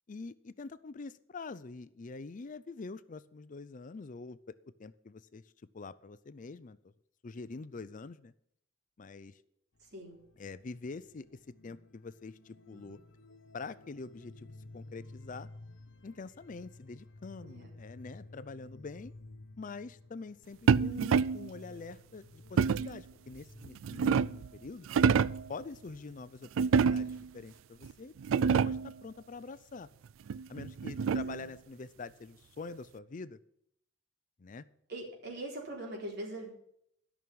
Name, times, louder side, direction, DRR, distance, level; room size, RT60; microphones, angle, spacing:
voice 1, 0.1-5.4 5.7-6.9 7.2-8.3 9.0-9.4 10.4-11.3 11.6-13.0 13.5-14.5 14.7-15.5 16.0-19.1 19.6-24.9 25.5-28.1 28.4-29.9 30.5-33.4 34.4-34.6, left 4 dB, 40° left, 15 dB, 0.5 m, -45 dB
sound 1, 9.8-24.4, left 2 dB, 70° left, 1.2 m, -54 dB
voice 2, 9.8-10.2 12.7-13.0 17.4-17.7 26.8-27.1 31.1-31.5 34.9-36.5, right 1 dB, 55° right, -1 dB, 3.9 m, -43 dB
sound 2, 20.7-21.5 22.6-23.0 23.6-24.5 24.9-25.5 26.6-27.3 27.8-27.9 28.2-28.9 30.3-31.5, right 6 dB, 85° right, 0.4 m, -27 dB
12.5 x 6.1 x 8.6 m, 0.72 s
head